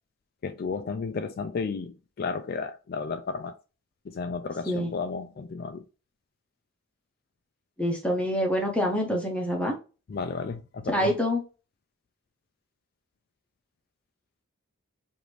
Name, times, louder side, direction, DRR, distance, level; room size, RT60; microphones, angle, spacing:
voice 1, 0.4-3.5 4.1-5.8 10.1-11.2, left 4 dB, 45° left, 0.3 m, -33 dB
voice 2, 7.8-9.7 10.9-11.4, equal, 5° left, 0.7 m, -26 dB
4.9 x 2.6 x 3.1 m
head